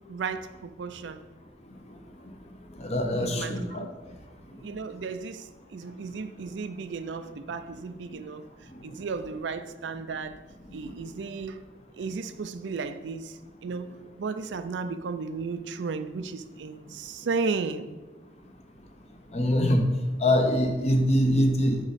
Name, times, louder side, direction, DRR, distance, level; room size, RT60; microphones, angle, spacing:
voice 1, 0.1-1.2 3.2-3.9 4.6-8.5 8.8-10.4 10.7-11.6 11.9-17.9, right 4 dB, 80° right, 10 dB, 0.4 m, -34 dB
voice 2, 2.8-3.9 19.3-19.8 20.2-21.8, left 1 dB, 35° left, 3 dB, 0.9 m, -23 dB
6.3 x 4.9 x 4.2 m, 1.2 s
head